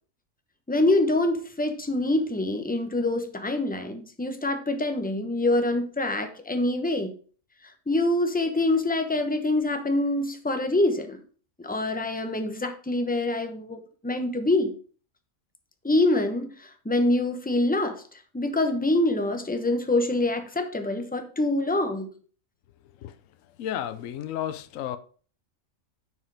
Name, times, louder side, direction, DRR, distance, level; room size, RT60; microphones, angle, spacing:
voice 1, 0.7-7.1 7.9-11.2 11.6-14.7 15.8-18.0 18.3-22.1, left 2 dB, 5° left, 0.9 m, -25 dB
voice 2, 23.6-25.0, left 11 dB, 75° left, 1.1 m, -32 dB
9.7 x 5.0 x 4.8 m
omnidirectional pair, 1.4 m